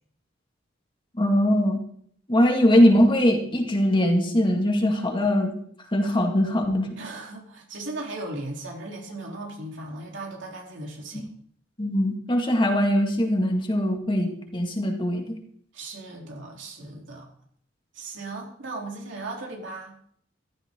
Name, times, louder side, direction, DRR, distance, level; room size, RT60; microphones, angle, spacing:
voice 1, 1.2-1.8 2.3-5.5 5.9-6.9 11.1-11.2 11.8-15.3, equal, 25° left, 2 dB, 2.1 m, -21 dB
voice 2, 7.0-11.3 15.7-17.3 17.9-20.0, right 2 dB, 70° right, -1 dB, 3.6 m, -37 dB
15.0 x 13.0 x 3.8 m, 0.63 s
head